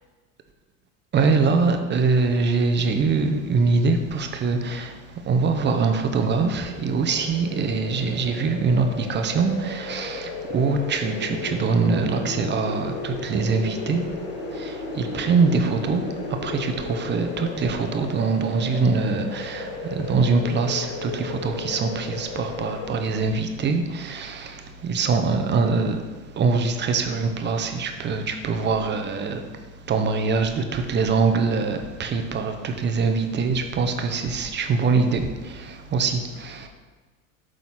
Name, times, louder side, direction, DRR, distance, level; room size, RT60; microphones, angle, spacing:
voice 1, 1.1-14.1 14.5-26.0 26.3-29.5 29.9-36.7, right 4 dB, 30° right, 6 dB, 0.8 m, -23 dB
sound 1, 6.6-22.9, left 3 dB, 35° left, 2.2 m, -35 dB
7.7 x 4.0 x 5.8 m, 1.3 s
supercardioid pair, 110°, 38 cm